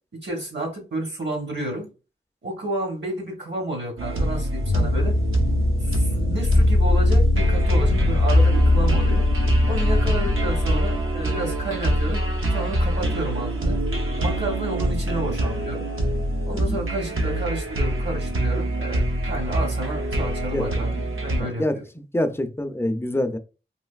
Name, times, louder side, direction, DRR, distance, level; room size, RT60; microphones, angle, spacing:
voice 1, 0.1-1.9 2.4-5.2 5.8-9.3 9.7-12.2 12.5-13.8 14.2-15.9 16.4-21.8, right 1 dB, 55° right, 1.0 m, -31 dB
sound 1, 4.0-21.4, right 1 dB, 75° right, 0.7 m, -25 dB
sound 2, 4.6-11.8, left 2 dB, 60° left, 0.6 m, -21 dB
voice 2, 21.4-23.4, left 1 dB, 10° left, 0.4 m, -26 dB
3.2 x 2.5 x 2.3 m
wide cardioid pair, 85°, 21 cm